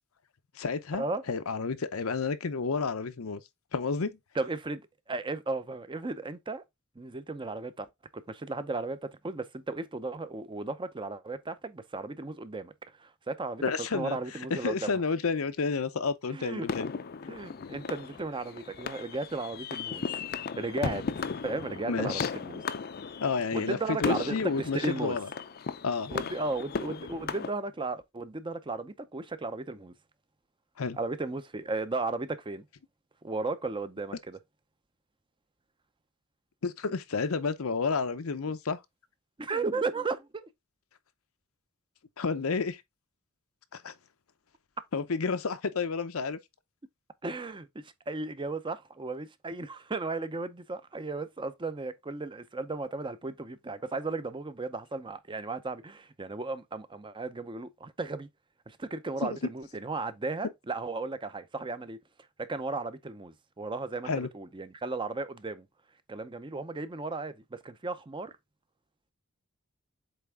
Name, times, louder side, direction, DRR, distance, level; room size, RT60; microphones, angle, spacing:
voice 1, 0.6-3.4 3.7-4.2 13.6-14.2 14.5-16.9 21.9-22.3 23.2-25.3 25.8-26.1 30.8-31.0 36.6-38.8 42.2-42.8 43.7-43.9 44.9-46.4 59.2-59.4 64.0-64.3, left 4 dB, 90° left, 0.7 m, -30 dB
voice 2, 4.4-4.8 5.1-6.6 7.0-7.9 8.1-12.7 13.0-13.6 13.9-14.9 16.3-16.7 17.3-20.1 20.6-21.0 21.4-22.6 23.5-25.2 26.1-29.9 31.0-32.6 33.2-34.4 39.4-40.5 47.2-58.3 58.7-62.0 62.4-65.7 66.1-68.3, right 3 dB, 25° right, 0.6 m, -35 dB
sound 1, 16.7-27.5, left 5 dB, 50° left, 0.5 m, -36 dB
7.9 x 3.4 x 3.5 m
head